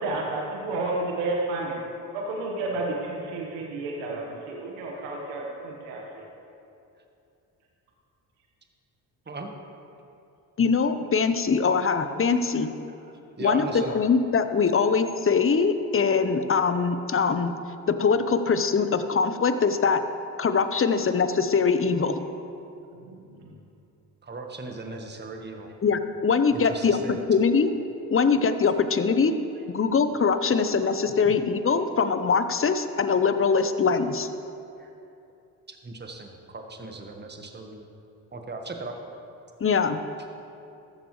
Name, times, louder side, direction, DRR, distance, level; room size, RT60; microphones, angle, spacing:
voice 1, 0.0-1.8 2.1-6.2 22.9-23.5, right 2 dB, 75° right, -1 dB, 1.5 m, -31 dB
voice 2, 10.6-12.7 13.4-17.5 17.9-20.0 20.4-22.2 25.8-27.7 28.1-29.3 29.7-34.3 39.6-40.0, left 5 dB, 30° left, 10 dB, 0.9 m, -23 dB
voice 3, 13.4-13.9 24.2-25.7 26.5-27.2 34.8-34.9 35.7-37.8 38.3-38.9, right 3 dB, 20° right, 3 dB, 1.5 m, -37 dB
14.0 x 12.5 x 3.2 m, 2.7 s
hypercardioid pair, 45°, 46 cm